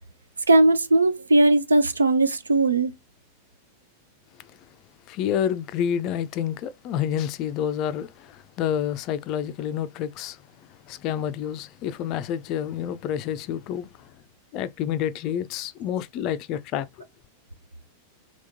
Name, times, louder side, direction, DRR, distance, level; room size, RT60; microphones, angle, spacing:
voice 1, 0.5-2.9, right 2 dB, 75° right, 0.5 m, -19 dB
voice 2, 5.1-14.1 14.5-17.1, left 9 dB, 40° left, 0.4 m, -29 dB
3.5 x 3.0 x 2.7 m
figure-of-eight pair, 90°, 0 cm